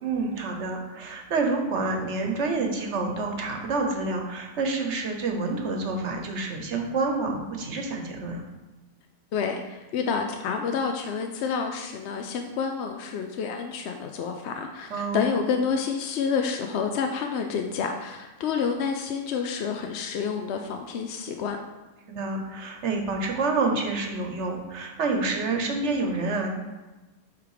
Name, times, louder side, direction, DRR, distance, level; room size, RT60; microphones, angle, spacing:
voice 1, 0.0-8.4 14.9-15.3 22.1-26.5, right 3 dB, 60° right, 3 dB, 1.2 m, -28 dB
voice 2, 9.3-21.6, left 6 dB, 65° left, 4 dB, 0.8 m, -29 dB
8.1 x 3.5 x 4.8 m, 1.2 s
omnidirectional pair, 1.4 m